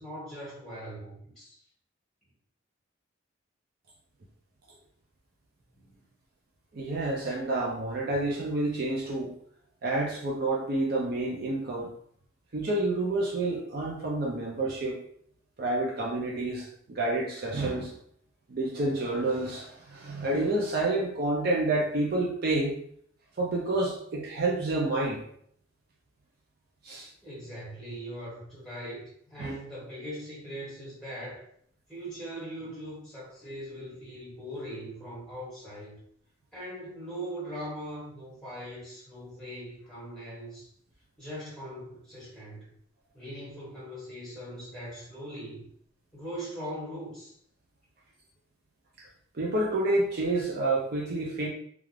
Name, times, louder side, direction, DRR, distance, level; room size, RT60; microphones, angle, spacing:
voice 1, 0.0-1.6 5.7-6.0 27.2-31.5 31.9-36.0 36.5-40.7 41.2-42.7 43.1-45.7 46.1-47.3, equal, 5° left, -8 dB, 1.4 m, -40 dB
voice 2, 6.7-9.3 9.8-11.9 12.5-15.0 15.6-17.9 18.5-22.8 23.4-25.2 26.8-27.1 29.4-29.5 49.0-49.1 49.3-51.5, right 2 dB, 50° right, -2 dB, 0.5 m, -29 dB
2.4 x 2.4 x 3.2 m, 0.65 s
head